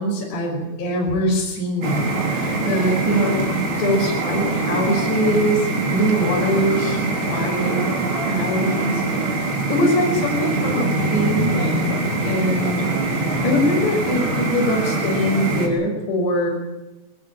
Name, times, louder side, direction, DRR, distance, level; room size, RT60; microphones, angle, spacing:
voice 1, 0.0-3.4 3.7-7.8 8.3-9.0 9.7-13.0 13.4-16.5, equal, 60° left, -1 dB, 7.8 m, -23 dB
sound 1, 1.8-15.7, right 2 dB, 30° right, 4.0 m, -23 dB
21.0 x 20.5 x 8.9 m, 1.0 s
omnidirectional pair, 5.6 m